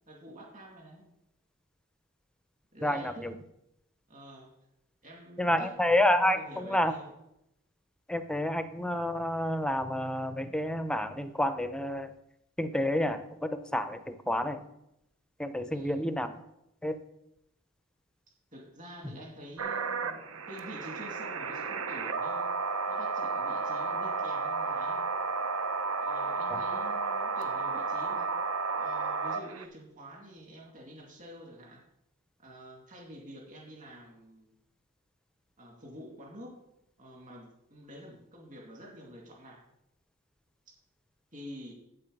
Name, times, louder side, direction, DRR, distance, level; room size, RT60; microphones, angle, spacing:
voice 1, 0.1-1.0 2.7-3.4 4.1-4.5 5.0-5.7 6.3-7.1 15.7-16.1 18.3-22.5 22.9-25.0 26.0-28.3 28.8-31.8 32.4-34.5 35.6-36.6 37.0-39.6 40.7-40.8 41.3-41.7, equal, 40° right, -1 dB, 2.5 m, -48 dB
voice 2, 2.8-3.3 5.4-6.9 8.1-12.1 12.6-14.6 15.4-16.4 16.8-17.0 19.0-19.2 26.5-26.6, left 1 dB, 5° left, 10 dB, 0.5 m, -29 dB
sound 1, 19.6-29.6, right 4 dB, 75° right, 0.8 m, -32 dB
8.4 x 7.6 x 5.3 m, 0.82 s
head